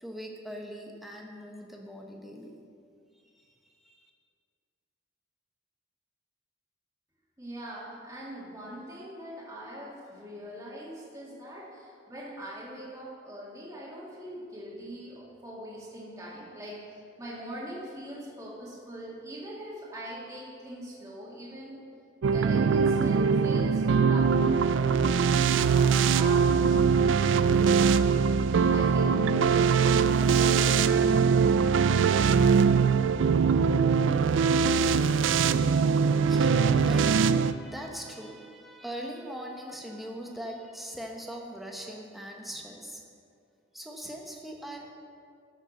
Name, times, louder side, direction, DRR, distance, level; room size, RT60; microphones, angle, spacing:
voice 1, 0.0-2.6 3.1-4.1 35.7-36.0 36.3-43.0 43.7-44.9, equal, ahead, 0 dB, 1.1 m, -41 dB
voice 2, 7.4-21.8 22.3-31.4, equal, 15° right, -8 dB, 2.1 m, -42 dB
sound 1, 22.2-37.5, right 6 dB, 75° right, 0.3 m, -22 dB
13.0 x 6.4 x 6.6 m, 2.3 s
head